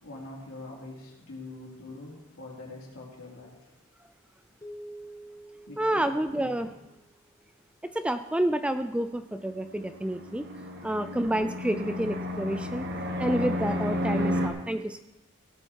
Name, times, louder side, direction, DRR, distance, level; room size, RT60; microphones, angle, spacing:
voice 1, 0.0-3.6 5.7-6.7 10.8-10.9, left 2 dB, 70° left, -3 dB, 3.9 m, -44 dB
sound 1, 4.6-7.2, right 1 dB, 15° left, 1.3 m, -47 dB
voice 2, 5.8-6.7 7.8-10.5 10.8-15.0, right 1 dB, 5° right, 10 dB, 0.3 m, -29 dB
Fixed-wing aircraft airplane, 9.6-14.5, left 1 dB, 50° right, 1.6 m, -32 dB
16.5 x 8.8 x 4.6 m, 0.96 s
head